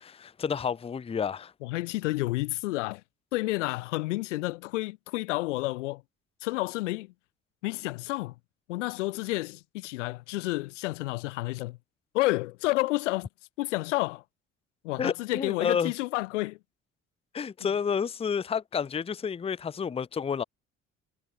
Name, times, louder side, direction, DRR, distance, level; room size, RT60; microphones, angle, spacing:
voice 1, 0.0-1.5 15.0-15.9 17.3-20.4, left 7 dB, 15° left, 0.5 m, -30 dB
voice 2, 1.6-3.0 3.3-6.0 6.4-7.1 7.6-8.3 8.7-11.8 12.1-13.3 13.6-14.2 14.8-16.6, left 20 dB, 80° left, 0.7 m, -30 dB
hypercardioid pair, 50°, 36 cm